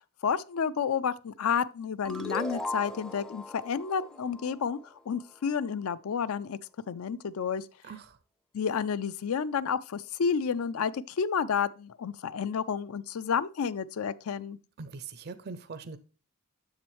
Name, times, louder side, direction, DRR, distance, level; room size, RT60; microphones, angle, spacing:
voice 1, 0.2-4.8 5.1-6.6 6.9-7.7 8.5-14.6, left 6 dB, 70° left, 0.4 m, -30 dB
sound 1, 2.0-5.3, left 1 dB, ahead, 0.5 m, -38 dB
voice 2, 7.8-8.2 14.8-16.0, right 4 dB, 50° right, 0.5 m, -42 dB
7.2 x 7.0 x 3.1 m
head